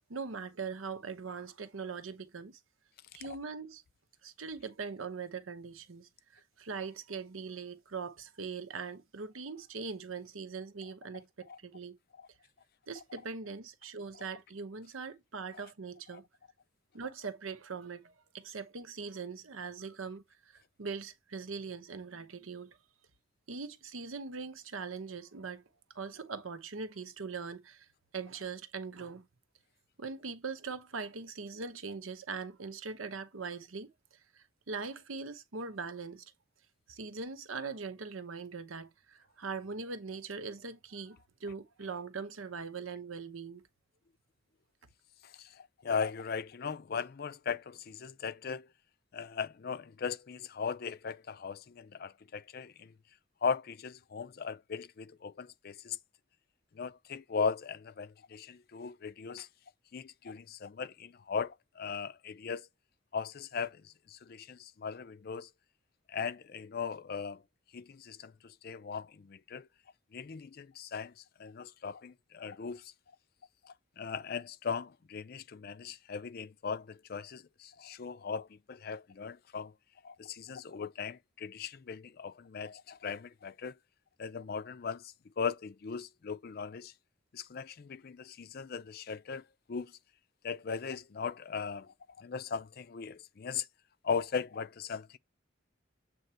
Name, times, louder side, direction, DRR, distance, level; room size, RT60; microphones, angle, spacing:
voice 1, 0.1-2.6 3.1-3.8 4.2-6.1 6.6-12.0 12.9-16.2 16.9-20.2 20.5-22.8 23.5-25.6 25.9-27.9 28.1-29.3 30.0-33.9 34.3-36.2 36.9-43.6, right 5 dB, 90° right, 0.9 m, -41 dB
voice 2, 45.4-48.7 49.1-52.9 53.4-56.0 56.8-59.5 59.9-62.7 63.1-63.8 64.1-65.5 66.1-67.4 67.7-69.7 70.1-71.1 71.4-72.8 73.6-79.7 80.0-83.7 84.2-86.9 87.3-89.4 89.7-89.9 90.4-93.7 94.0-95.2, left 6 dB, 50° left, 0.4 m, -38 dB
7.8 x 3.0 x 4.3 m
head